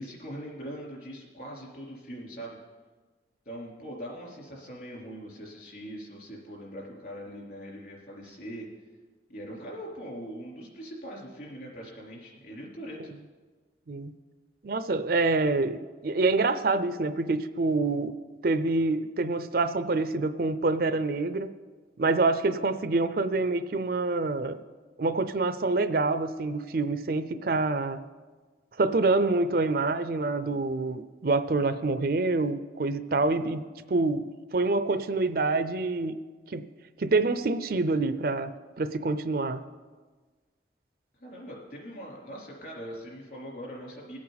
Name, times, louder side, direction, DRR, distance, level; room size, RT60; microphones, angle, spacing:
voice 1, 0.0-2.6 3.5-8.7 9.3-13.1 41.2-44.2, equal, 50° left, -2 dB, 3.8 m, -41 dB
voice 2, 14.6-15.8 16.0-18.2 18.4-21.5 22.0-24.6 25.0-28.0 28.8-33.6 33.9-34.2 34.5-36.1 36.5-36.6 37.0-38.5 38.8-39.6, right 3 dB, 55° right, 11 dB, 0.5 m, -26 dB
21.5 x 8.6 x 4.1 m, 1.4 s
head